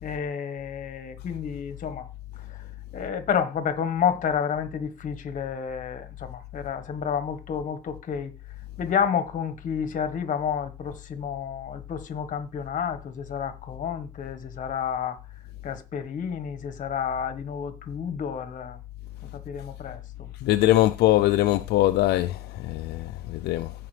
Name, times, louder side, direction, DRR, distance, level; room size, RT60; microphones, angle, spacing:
voice 1, 0.0-8.3 8.8-18.8 19.3-20.3, left 7 dB, 50° left, 1.4 m, -30 dB
voice 2, 20.4-23.7, left 15 dB, 75° left, 0.4 m, -22 dB
15.0 x 5.0 x 3.3 m
cardioid pair, 110°, 17 cm